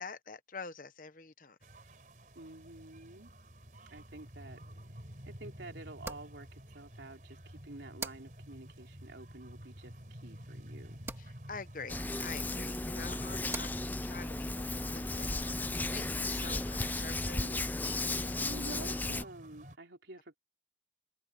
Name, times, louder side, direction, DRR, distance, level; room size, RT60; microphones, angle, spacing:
voice 1, 0.0-1.6 11.2-15.6 15.9-18.3, left 4 dB, 45° left, 0.9 m, -47 dB
sound 1, 1.6-19.8, right 1 dB, 45° right, 4.2 m, -51 dB
voice 2, 2.3-3.3 3.9-4.6 5.2-11.0 12.5-13.5 17.4-17.6 18.4-20.4, right 2 dB, 80° right, 3.4 m, -49 dB
sound 2, 3.9-16.8, right 3 dB, 15° right, 2.2 m, -51 dB
Hands, 11.9-19.2, left 2 dB, 10° left, 0.4 m, -35 dB
head